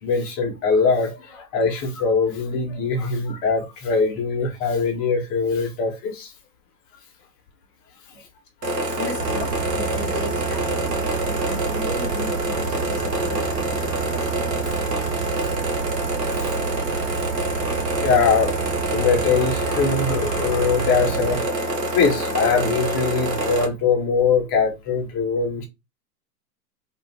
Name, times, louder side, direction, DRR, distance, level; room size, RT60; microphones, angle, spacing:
voice 1, 0.0-6.3 14.6-14.8 16.3-16.5 18.0-18.7 18.9-21.7 21.9-25.6, left 5 dB, 30° left, 0.8 m, -22 dB
sound 1, 8.6-23.7, right 1 dB, 90° right, 1.0 m, -26 dB
voice 2, 9.0-14.3, left 2 dB, 5° left, 0.5 m, -36 dB
sound 2, 9.2-21.4, right 11 dB, 55° right, 0.5 m, -30 dB
2.5 x 2.4 x 3.1 m
hypercardioid pair, 110°, 48 cm